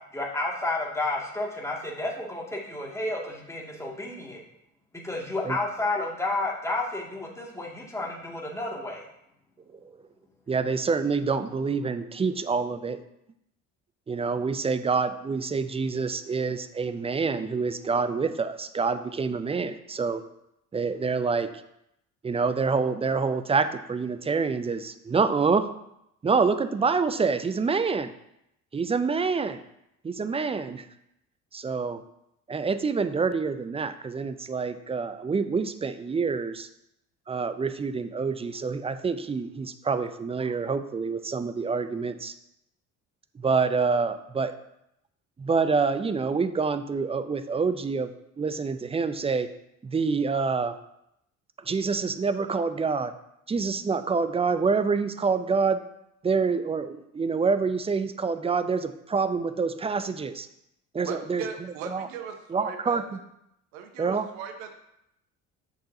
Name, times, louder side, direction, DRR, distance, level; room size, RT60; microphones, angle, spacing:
voice 1, 0.1-4.4 4.9-9.0, left 2 dB, 5° left, -3 dB, 2.2 m, -31 dB
voice 2, 10.5-13.0 14.1-20.2 20.7-21.5 22.2-25.7 26.2-28.1 28.7-29.6 30.0-30.8 31.5-32.0 32.5-36.7 37.3-42.3 43.3-44.5 45.4-48.1 48.4-49.5 49.8-50.8 51.7-53.1 53.5-55.8 56.2-60.5 60.9-61.4 61.9-62.1 62.5-63.0 64.0-64.3, right 5 dB, 15° right, 11 dB, 0.5 m, -27 dB
voice 3, 61.0-63.0 63.7-64.7, right 7 dB, 70° right, 6 dB, 1.1 m, -38 dB
8.2 x 6.2 x 2.8 m, 0.80 s
figure-of-eight pair, 55°, 41 cm